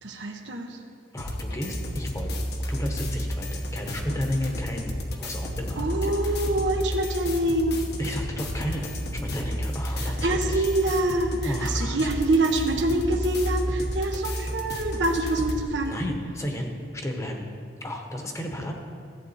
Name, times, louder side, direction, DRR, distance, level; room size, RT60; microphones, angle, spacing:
voice 1, 0.0-0.8 5.7-7.8 10.0-16.0, right 1 dB, 85° right, 4 dB, 1.0 m, -26 dB
voice 2, 1.1-6.4 8.0-10.7 11.4-12.1 15.8-17.5 17.8-18.7, equal, 15° left, 2 dB, 1.0 m, -33 dB
sound 1, 1.2-15.6, equal, 60° left, 1.2 m, -31 dB
15.0 x 7.8 x 4.2 m, 2.3 s
head